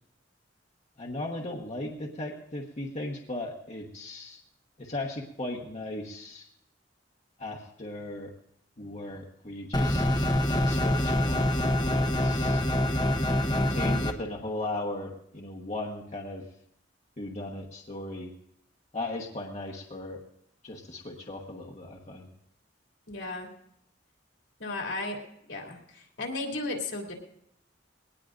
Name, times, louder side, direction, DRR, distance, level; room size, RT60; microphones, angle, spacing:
voice 1, 1.0-4.4 4.8-6.5 7.4-8.3 8.8-11.5 11.8-12.6 13.5-16.5 17.2-18.3 18.9-20.2 20.6-22.3, left 2 dB, 40° left, -1 dB, 1.2 m, -37 dB
sound 1, 9.7-14.1, left 1 dB, 25° left, 1.0 m, -25 dB
voice 2, 23.1-23.5 24.6-25.2 25.5-27.1, left 2 dB, 80° left, 0 dB, 2.9 m, -34 dB
21.5 x 18.5 x 2.6 m, 0.74 s
head